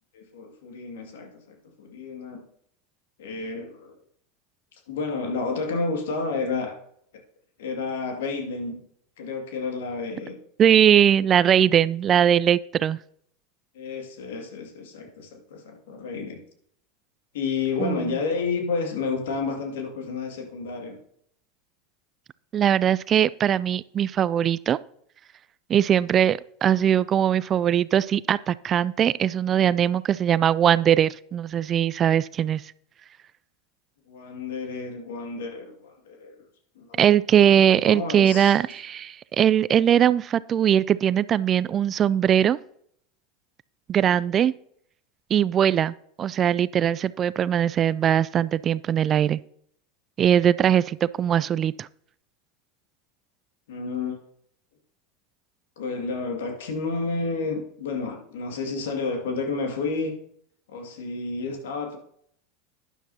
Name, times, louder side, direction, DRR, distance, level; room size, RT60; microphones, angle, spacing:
voice 1, 0.1-2.4 3.2-4.0 4.9-6.8 7.6-8.8 9.2-10.4 13.7-16.4 17.3-21.0 34.1-36.4 36.8-37.0 37.9-38.6 53.7-54.2 55.8-60.1 60.7-62.0, left 4 dB, 70° left, 3 dB, 2.2 m, -30 dB
voice 2, 10.6-13.0 17.8-18.0 22.5-24.8 25.7-32.6 37.0-42.6 43.9-44.5 45.3-49.4 50.2-51.9, right 9 dB, 35° right, 19 dB, 0.3 m, -21 dB
12.0 x 10.0 x 2.8 m, 0.67 s
hypercardioid pair, 85°, 0 cm